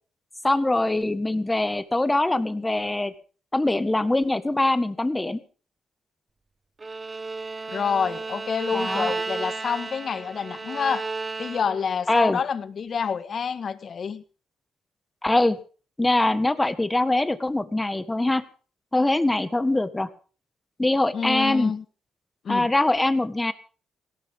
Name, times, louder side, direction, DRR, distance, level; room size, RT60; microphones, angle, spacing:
voice 1, 0.4-3.1 3.5-5.4 8.7-9.1 12.1-12.4 15.2-15.6 16.0-18.4 18.9-20.1 20.8-21.7 22.5-23.5, left 2 dB, 15° left, 12 dB, 1.6 m, -23 dB
Bowed string instrument, 6.8-12.0, right 3 dB, 25° right, 1.2 m, -33 dB
voice 2, 7.7-11.1 11.4-14.2 21.1-21.8 22.4-22.7, left 6 dB, 50° left, 12 dB, 1.6 m, -28 dB
18.5 x 17.5 x 3.7 m, 0.38 s
cardioid pair, 90°, 0 cm